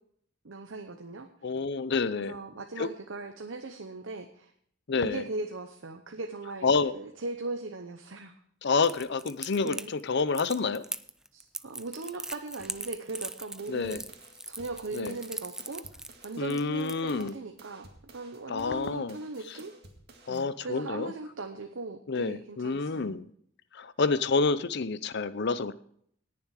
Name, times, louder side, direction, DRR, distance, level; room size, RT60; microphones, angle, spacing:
voice 1, 0.4-1.3 2.1-4.5 5.0-8.3 9.6-9.9 11.3-14.0 14.5-15.9 16.2-19.7 20.3-23.2, right 3 dB, 90° right, 5 dB, 0.9 m, -39 dB
voice 2, 1.4-2.4 2.8-2.9 4.9-5.2 6.6-6.9 8.6-10.8 13.7-14.0 14.9-15.2 16.4-17.3 18.5-19.2 20.3-21.1 22.1-23.3 23.7-25.7, left 4 dB, 60° left, 15 dB, 0.6 m, -28 dB
Crackle, 8.8-17.3, right 1 dB, 5° right, 0.4 m, -40 dB
sound 1, 12.6-16.4 16.8-20.4, right 2 dB, 55° right, 2.1 m, -55 dB
19.0 x 7.1 x 4.8 m, 0.66 s
head